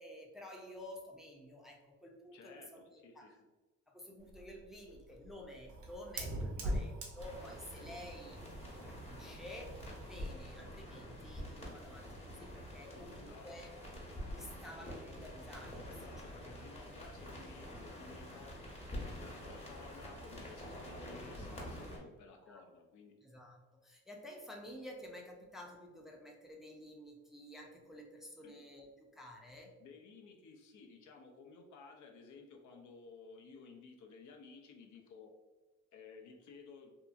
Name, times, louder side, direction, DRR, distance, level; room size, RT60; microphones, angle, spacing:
voice 1, 0.0-3.4 3.9-8.4 8.9-9.8 10.1-13.7 14.3-15.9 16.5-16.6 22.5-22.6 23.2-29.8, left 1 dB, ahead, 0 dB, 0.4 m, -51 dB
voice 2, 2.3-3.4 6.6-6.9 7.8-8.1 13.1-13.7 15.9-23.1 28.4-28.6 29.8-35.3 35.9-37.0, left 4 dB, 70° left, 3 dB, 0.5 m, -56 dB
Fire, 4.2-10.4, right 1 dB, 85° right, 0.6 m, -43 dB
sound 1, 7.2-22.0, equal, 20° left, 0.9 m, -47 dB
2.7 x 2.4 x 2.4 m, 1.2 s
cardioid pair, 90°, 30 cm